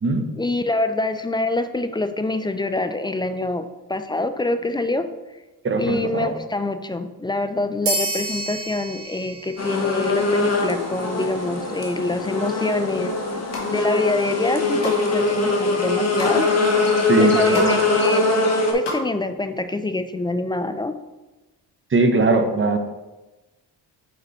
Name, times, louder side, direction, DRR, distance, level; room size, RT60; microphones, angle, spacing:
voice 1, 0.4-5.1 5.8-13.1 13.7-16.5 17.2-18.3 18.7-20.9, left 2 dB, 10° left, 10 dB, 0.3 m, -25 dB
voice 2, 5.6-6.3 17.1-17.8 21.9-22.8, right 3 dB, 30° right, 6 dB, 0.9 m, -20 dB
sound 1, 7.9-10.9, right 2 dB, 70° right, 1.8 m, -30 dB
sound 2, 9.6-18.7, left 3 dB, 35° left, 1.2 m, -22 dB
sound 3, 13.2-13.7 14.3-15.0 15.4-16.4 16.9-17.0 17.2-17.8 18.0-19.0 19.3-19.4, left 2 dB, 75° left, 1.7 m, -32 dB
5.0 x 4.9 x 4.3 m, 1.1 s
cardioid pair, 75°, 42 cm